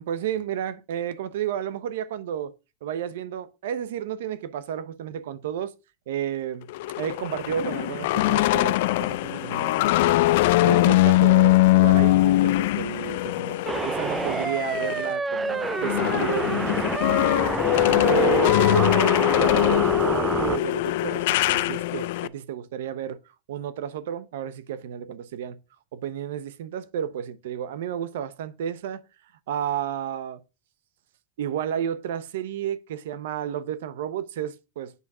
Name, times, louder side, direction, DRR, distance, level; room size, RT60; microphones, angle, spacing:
voice 1, 0.0-2.5 2.8-5.7 6.1-6.7 7.0-17.5 18.0-23.2 23.5-25.6 25.9-29.0 29.5-30.4 31.4-34.9, right 9 dB, 80° right, 0.9 m, -32 dB
sound 1, 6.7-15.1 15.4-22.3, left 17 dB, 70° left, 0.4 m, -22 dB
sound 2, 13.6-20.6, right 4 dB, 15° right, 0.4 m, -28 dB
8.3 x 4.1 x 6.0 m
supercardioid pair, 125°, 0 cm